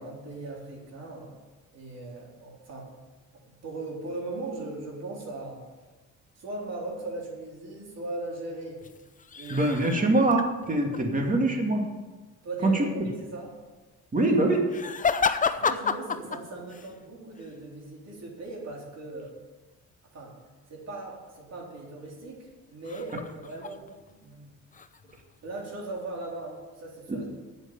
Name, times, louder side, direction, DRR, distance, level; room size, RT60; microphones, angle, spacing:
voice 1, 0.0-1.4 1.7-2.9 3.6-5.6 6.4-8.8 9.4-9.7 10.1-10.2 12.4-13.5 15.5-19.3 20.1-20.3 20.7-24.5 25.4-27.3, right 2 dB, 60° right, -2 dB, 3.9 m, -39 dB
sound 1, 8.8-11.0 14.7-17.0 17.3-17.5 22.8-24.1 24.4-25.6 26.1-26.6, left 5 dB, 25° left, 0.6 m, -31 dB
voice 2, 9.5-11.8 12.6-12.8 14.1-14.7, right 2 dB, 25° right, 2 dB, 2.3 m, -23 dB
8.6 x 7.7 x 9.0 m, 1.2 s
cardioid pair, 90°, 30 cm